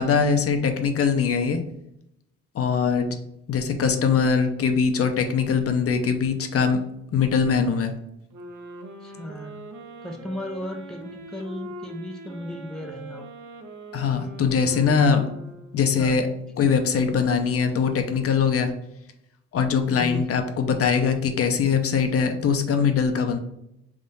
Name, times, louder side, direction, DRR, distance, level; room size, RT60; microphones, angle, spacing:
voice 1, 0.0-1.6 2.5-3.2 3.5-6.8 7.1-7.9 13.9-15.3 15.7-16.3 16.6-18.7 19.5-23.4, left 6 dB, 50° left, 6 dB, 0.7 m, -22 dB
sound 1, 8.3-16.0, right 2 dB, 75° right, 0.7 m, -42 dB
voice 2, 9.0-9.6 10.0-13.2 16.0-16.2 20.0-20.3, left 1 dB, ahead, 4 dB, 0.4 m, -35 dB
3.6 x 2.6 x 4.0 m, 0.81 s
cardioid pair, 90°, 30 cm